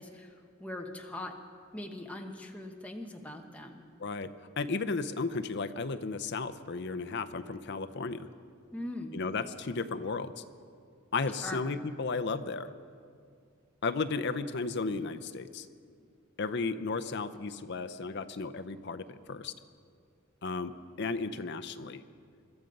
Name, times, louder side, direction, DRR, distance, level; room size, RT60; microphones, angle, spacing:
voice 1, 0.0-1.3 1.7-3.8 8.7-9.1 11.4-11.6, left 1 dB, 5° left, 2 dB, 1.0 m, -41 dB
voice 2, 4.6-8.3 9.1-10.3 11.1-12.7 13.8-15.7 16.4-19.5 20.4-22.0, left 4 dB, 55° left, 11 dB, 0.6 m, -34 dB
22.0 x 12.5 x 5.3 m, 2.2 s
head